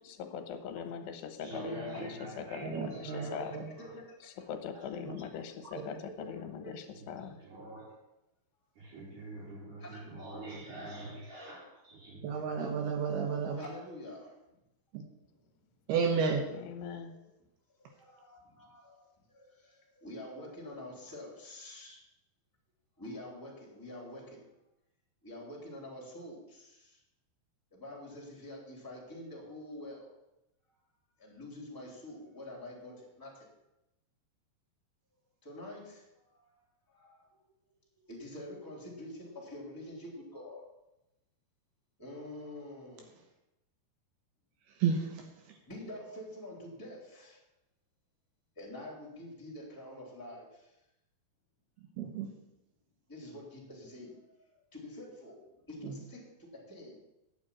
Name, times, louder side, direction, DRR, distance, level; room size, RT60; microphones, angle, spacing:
voice 1, 0.1-3.5 4.2-7.4 16.5-17.1, left 7 dB, 85° left, 8 dB, 3.2 m, -41 dB
voice 2, 1.4-3.3 7.0-7.9 8.8-12.4, right 2 dB, 50° right, -8 dB, 4.5 m, -45 dB
voice 3, 2.6-3.6 5.1-5.2 12.2-13.7 15.9-16.5 44.8-45.2 52.0-52.3 55.8-55.9, right 6 dB, 75° right, 3 dB, 3.0 m, -31 dB
voice 4, 9.8-10.5 13.5-14.4 17.1-17.3 17.8-19.0 19.4-22.0 23.0-24.5 25.2-27.0 27.7-30.1 31.2-33.5 35.4-35.8 36.3-36.5 36.9-37.4 38.0-40.6 42.0-43.2 45.6-47.4 48.5-50.7 53.1-54.2 54.7-55.3 55.7-57.0, left 1 dB, 5° left, -3 dB, 3.1 m, -47 dB
9.4 x 7.1 x 8.7 m, 0.92 s
omnidirectional pair, 4.8 m